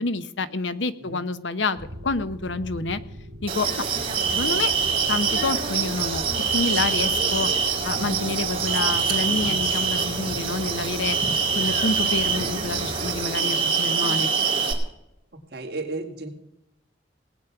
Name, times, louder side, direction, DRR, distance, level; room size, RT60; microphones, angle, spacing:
voice 1, 0.0-1.8 2.0-3.0 3.4-3.8 4.3-4.7 5.1-6.3 6.5-7.5 7.8-11.2 11.5-14.3, left 3 dB, 85° left, 13 dB, 0.8 m, -28 dB
sound 1, 1.8-13.3, equal, 85° right, 1.7 m, -40 dB
sound 2, 3.5-14.7, right 5 dB, 30° right, 2.6 m, -24 dB
voice 2, 15.5-16.3, right 3 dB, 60° right, 2 dB, 2.1 m, -32 dB
19.0 x 8.5 x 5.8 m, 0.87 s
head